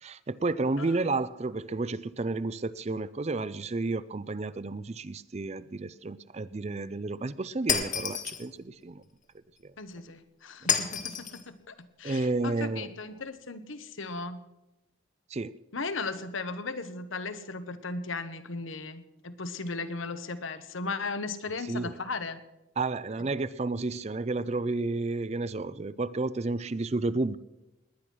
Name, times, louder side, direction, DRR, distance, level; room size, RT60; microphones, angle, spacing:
voice 1, 0.0-9.0 9.6-9.7 12.0-12.9 15.3-15.5 21.7-21.9 22.8-27.4, right 3 dB, 30° right, 0.4 m, -31 dB
Shatter, 7.7-8.4 10.7-11.4, left 7 dB, 40° left, 1.6 m, -29 dB
voice 2, 9.8-14.5 15.7-22.4, left 3 dB, 80° left, 1.2 m, -37 dB
19.5 x 10.0 x 6.2 m
head